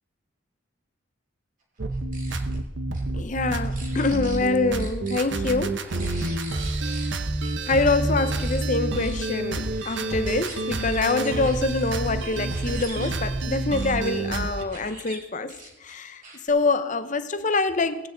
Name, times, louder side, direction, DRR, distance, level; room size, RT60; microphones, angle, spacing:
sound 1, 1.8-14.6, right 2 dB, 60° right, 0.8 m, -28 dB
sound 2, 1.9-2.6 2.9-3.0 3.5-4.5 4.8-7.1 7.4-7.8 8.3-8.6 8.9-14.1 14.6-15.2 15.5-16.5, right 3 dB, 40° right, 2.8 m, -44 dB
voice 1, 3.1-5.9 7.7-18.1, left 3 dB, 40° left, 0.7 m, -25 dB
18.0 x 9.3 x 3.9 m
head